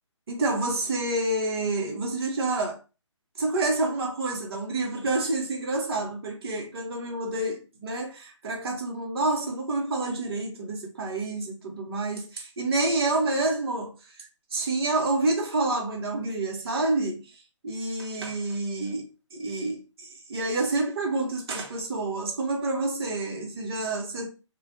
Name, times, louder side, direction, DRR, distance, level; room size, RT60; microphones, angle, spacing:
voice 1, 0.3-2.8 3.4-17.3 17.6-24.3, right 2 dB, 50° right, 0.9 m, -28 dB
2.3 x 2.1 x 2.8 m
figure-of-eight pair, 140°, 16 cm